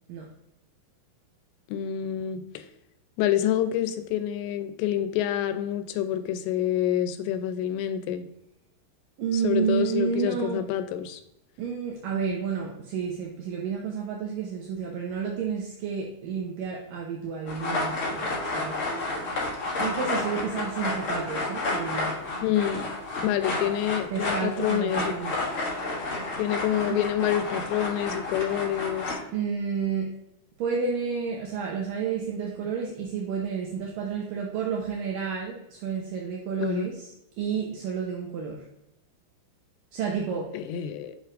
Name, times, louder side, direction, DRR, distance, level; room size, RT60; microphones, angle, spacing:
voice 1, 1.7-2.6 3.2-8.3 9.3-11.2 12.1-12.3 21.7-21.8 22.4-22.9 23.2-25.2 26.4-29.2 36.6-36.9 40.5-41.1, left 11 dB, 90° left, 10 dB, 2.9 m, -27 dB
voice 2, 9.2-10.6 11.6-18.8 19.8-22.1 24.1-25.3 26.9-27.0 29.3-30.1 30.6-37.0 37.4-38.6 39.9-40.5, right 6 dB, 80° right, -2 dB, 2.0 m, -30 dB
sound 1, 17.5-29.1, left 2 dB, 60° left, 1.4 m, -31 dB
7.2 x 5.8 x 2.5 m, 0.83 s
omnidirectional pair, 5.0 m